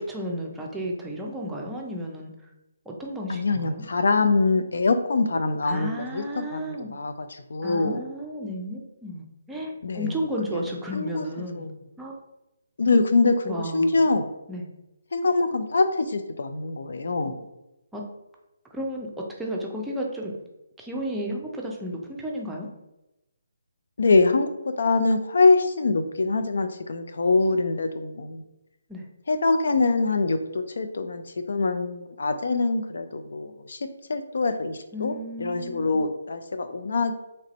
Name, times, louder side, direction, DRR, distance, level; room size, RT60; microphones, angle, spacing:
voice 1, 0.0-2.3 2.9-3.8 5.6-6.9 7.6-11.7 12.0-12.1 13.4-14.0 14.5-14.7 17.9-18.1 18.7-20.4 20.8-22.7 28.9-29.0 34.9-36.0, equal, 5° right, -1 dB, 0.5 m, -33 dB
voice 2, 3.3-8.0 9.8-10.2 10.5-10.6 10.9-11.3 11.5-11.8 12.8-14.3 15.1-17.4 24.0-28.4 29.3-37.1, left 3 dB, 70° left, 8 dB, 0.4 m, -24 dB
3.2 x 2.6 x 4.0 m, 0.93 s
figure-of-eight pair, 150°, 0 cm